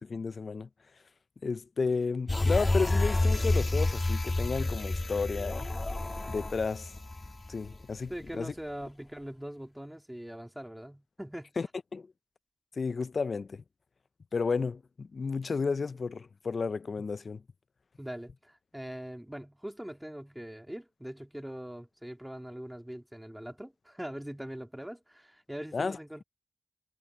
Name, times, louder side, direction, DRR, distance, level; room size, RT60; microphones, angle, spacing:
voice 1, 0.0-0.7 1.4-5.7 6.3-6.9 7.5-8.5 11.6-11.7 11.9-12.1 12.8-13.6 14.3-17.4 25.7-26.0, left 4 dB, 60° left, 0.5 m, -32 dB
sound 1, 2.3-7.9 8.3-8.4, left 2 dB, 30° left, 1.6 m, -29 dB
voice 2, 8.1-11.5 18.0-26.2, equal, 5° right, 3.4 m, -42 dB
cardioid pair, 55°, 0 cm